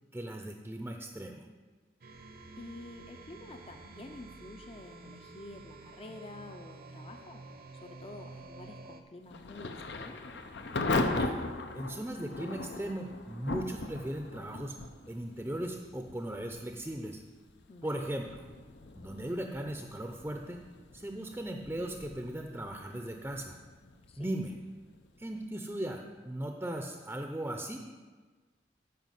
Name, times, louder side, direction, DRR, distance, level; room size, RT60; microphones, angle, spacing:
voice 1, 0.1-1.5 11.1-11.4 11.7-14.8 15.1-17.2 17.8-18.5 18.9-20.6 20.9-23.6 24.2-24.5 25.2-27.8, right 1 dB, 10° right, 3 dB, 0.6 m, -37 dB
sound 1, 2.0-9.0, right 3 dB, 55° right, 0.8 m, -50 dB
voice 2, 2.6-7.4 7.7-10.2 17.7-18.0 24.1-24.3, left 2 dB, 35° left, 6 dB, 0.6 m, -48 dB
Thunder / Rain, 9.3-26.0, left 2 dB, 80° left, 0.8 m, -39 dB
9.4 x 5.7 x 7.5 m, 1.4 s
head